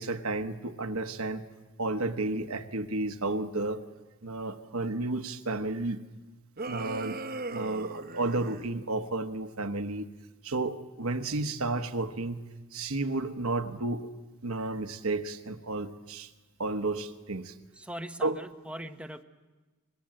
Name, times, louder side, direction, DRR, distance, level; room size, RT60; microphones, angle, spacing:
voice 1, 0.0-1.4 1.8-3.8 4.2-6.0 6.7-7.2 7.5-10.1 10.4-12.4 12.7-14.1 14.4-16.3 16.6-17.6 18.2-18.4, right 2 dB, 75° right, 7 dB, 1.1 m, -32 dB
sound 1, 6.6-8.7, right 3 dB, 45° right, 1.0 m, -38 dB
voice 2, 17.8-19.2, equal, 5° right, 7 dB, 0.9 m, -41 dB
25.0 x 20.5 x 7.6 m, 1.2 s
head